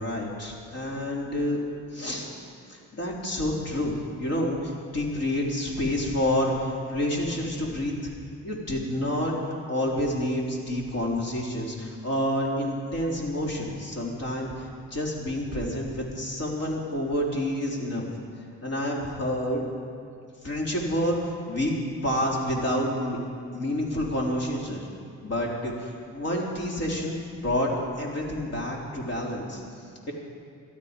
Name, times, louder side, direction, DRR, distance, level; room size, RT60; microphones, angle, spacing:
voice 1, 0.0-1.6 1.9-2.3 2.7-8.1 8.4-9.4 9.7-18.0 18.6-19.6 20.4-21.7 22.0-23.2 23.5-24.9 25.2-27.2 27.4-27.7 28.0-29.6, left 1 dB, 55° left, -2 dB, 3.8 m, -28 dB
19.0 x 12.5 x 5.3 m, 2.4 s
cardioid pair, 90°, 30 cm